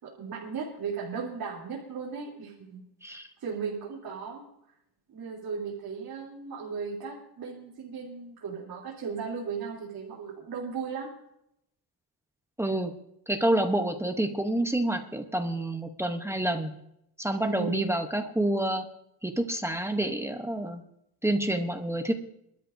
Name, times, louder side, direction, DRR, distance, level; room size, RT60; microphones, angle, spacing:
voice 1, 0.0-4.4 5.1-11.1 17.4-17.8, right 5 dB, 60° right, -4 dB, 3.1 m, -36 dB
voice 2, 12.6-12.9 13.3-16.7 17.2-18.8 19.2-20.8 21.2-22.1, right 1 dB, 5° right, 6 dB, 0.8 m, -28 dB
26.5 x 13.0 x 2.6 m, 0.79 s
wide cardioid pair, 175°, 39 cm